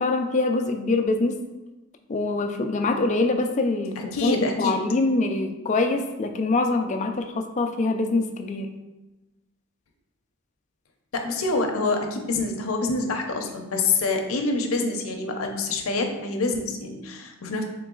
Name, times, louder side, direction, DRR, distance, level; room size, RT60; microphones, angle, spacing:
voice 1, 0.0-1.4 2.1-8.7, left 3 dB, 35° left, 6 dB, 0.3 m, -24 dB
voice 2, 4.0-4.8 11.1-17.6, left 3 dB, 80° left, 4 dB, 0.6 m, -26 dB
3.9 x 3.1 x 3.7 m, 1.1 s
head